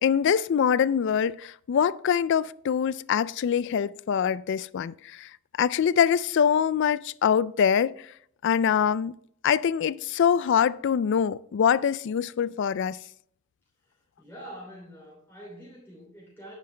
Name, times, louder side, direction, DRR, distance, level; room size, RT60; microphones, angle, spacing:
voice 1, 0.0-5.3 5.6-8.0 8.4-9.2 9.4-13.0, left 8 dB, 55° left, 0.3 m, -24 dB
voice 2, 14.2-16.5, right 1 dB, 10° left, 2.9 m, -45 dB
10.0 x 9.7 x 3.3 m
head